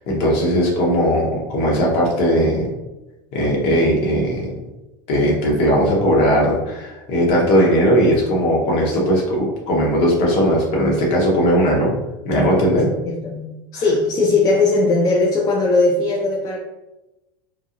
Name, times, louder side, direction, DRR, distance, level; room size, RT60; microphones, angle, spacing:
voice 1, 0.0-2.7 3.3-4.5 5.1-11.9 12.2-12.9 13.7-13.8, equal, 55° left, -2 dB, 1.0 m, -18 dB
voice 2, 13.0-16.6, left 3 dB, 30° left, -2 dB, 0.4 m, -18 dB
2.9 x 2.3 x 2.4 m, 1.0 s
supercardioid pair, 120°, 12 cm